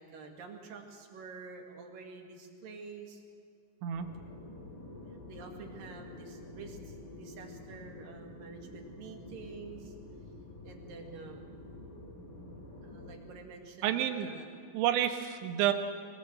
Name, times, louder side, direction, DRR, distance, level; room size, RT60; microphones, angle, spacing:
voice 1, 0.0-3.2 5.3-9.9 10.6-11.6 12.8-14.6, right 4 dB, 55° right, 2 dB, 3.0 m, -48 dB
sound 1, 3.9-13.2, left 2 dB, 80° left, 8.4 m, -48 dB
voice 2, 13.8-14.3 14.7-15.7, right 11 dB, 75° right, 5 dB, 3.3 m, -29 dB
23.0 x 18.5 x 7.8 m, 2.2 s
omnidirectional pair, 5.8 m